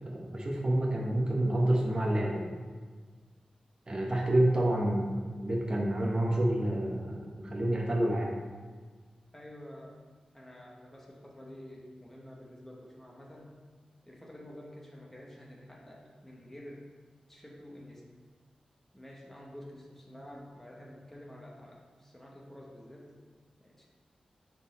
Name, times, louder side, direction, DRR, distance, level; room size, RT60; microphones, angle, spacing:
voice 1, 0.0-2.5 3.9-8.4, right 1 dB, 35° right, -1 dB, 1.1 m, -28 dB
voice 2, 9.3-10.0 10.3-13.6 14.0-16.8 17.3-18.0 18.9-23.1 23.6-23.9, left 1 dB, 15° left, -2 dB, 1.2 m, -49 dB
5.9 x 4.1 x 4.2 m, 1.5 s
cardioid pair, 65°, 2 cm